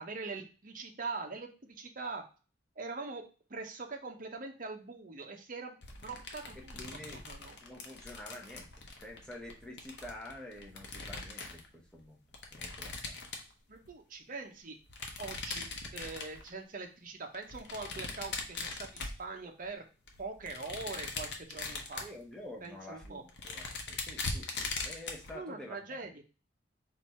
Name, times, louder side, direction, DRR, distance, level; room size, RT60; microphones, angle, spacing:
voice 1, 0.0-2.2 2.8-3.2 3.5-5.8 6.0-6.8 7.1-7.6 13.7-14.8 15.2-19.9 20.2-22.0 22.6-23.2 25.3-26.1, right 3 dB, 45° right, 3 dB, 0.8 m, -42 dB
sound 1, 5.8-11.7 12.3-13.9 14.8-16.5 17.3-19.7 20.1-22.2 22.6-22.7 23.0-25.3, left 3 dB, 65° left, 0.9 m, -41 dB
voice 2, 6.5-7.2 7.6-8.7 9.0-12.2 12.5-13.2 22.0-26.1, left 1 dB, 5° left, -1 dB, 1.0 m, -48 dB
4.4 x 2.7 x 4.3 m, 0.34 s
head